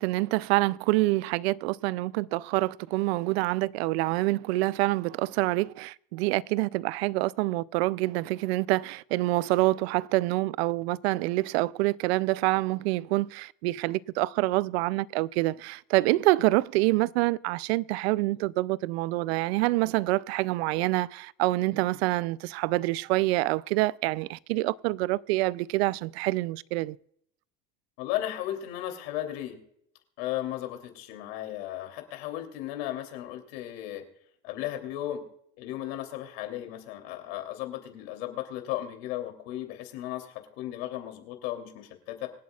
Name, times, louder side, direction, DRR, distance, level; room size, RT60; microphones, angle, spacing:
voice 1, 0.0-27.0, right 19 dB, 85° right, 0.5 m, -26 dB
voice 2, 28.0-29.6 30.2-34.0 34.4-35.2 35.6-42.3, left 13 dB, 75° left, 3.0 m, -35 dB
25.5 x 8.5 x 2.4 m
supercardioid pair, 145°, 31 cm